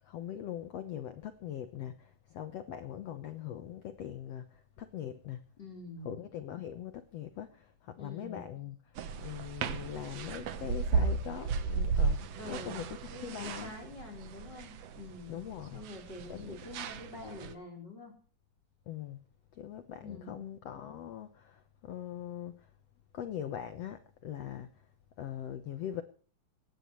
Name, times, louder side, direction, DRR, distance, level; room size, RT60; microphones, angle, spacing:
voice 1, 0.0-5.4 6.0-13.7 15.3-15.8 16.3-16.6 18.9-19.2 19.5-22.7 23.1-24.9 25.2-26.0, left 10 dB, 70° left, 1.5 m, -42 dB
voice 2, 5.6-6.2 8.0-8.4 12.4-15.5 15.7-18.1 20.0-20.4, left 2 dB, 30° left, 4.3 m, -46 dB
sound 1, 9.0-17.5, right 5 dB, 65° right, 1.7 m, -34 dB
18.5 x 16.5 x 3.1 m
omnidirectional pair, 4.2 m